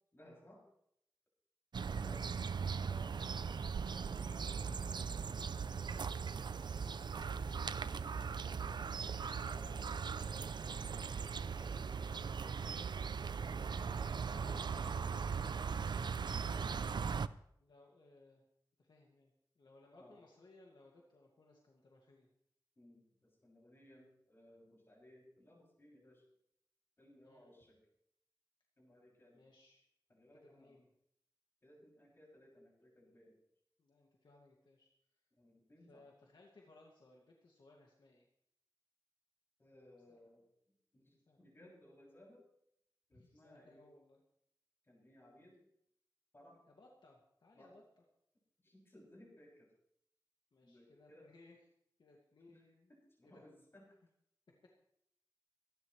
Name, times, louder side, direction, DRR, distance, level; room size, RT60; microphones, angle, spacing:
voice 1, 0.1-0.7 1.8-2.2 2.8-3.3 3.8-5.4 9.4-10.0 10.4-12.8 19.9-20.2 22.8-26.2 27.0-27.8 28.8-29.4 30.1-30.8 31.6-33.4 35.3-36.0 39.6-40.5 40.9-42.5 43.1-43.8 44.8-45.7 46.3-46.6 47.5-47.7 48.6-49.7 50.6-51.3 52.5-52.6 52.9-54.0, left 1 dB, 30° left, -3 dB, 6.9 m, -62 dB
sound 1, 1.7-17.3, right 6 dB, 65° right, 0.5 m, -39 dB
voice 2, 2.0-2.3 2.9-3.1 6.7-7.1 9.4-9.8 14.2-18.4 18.8-22.3 27.2-27.5 29.3-29.8 30.3-30.9 33.8-34.9 35.9-38.3 40.1-40.2 41.3-41.4 43.1-44.2 46.7-48.0 50.5-51.6 52.0-52.9 53.2-53.4, left 2 dB, 70° left, -1 dB, 2.2 m, -63 dB
25.0 x 11.5 x 3.3 m, 0.74 s
wide cardioid pair, 110°, 8 cm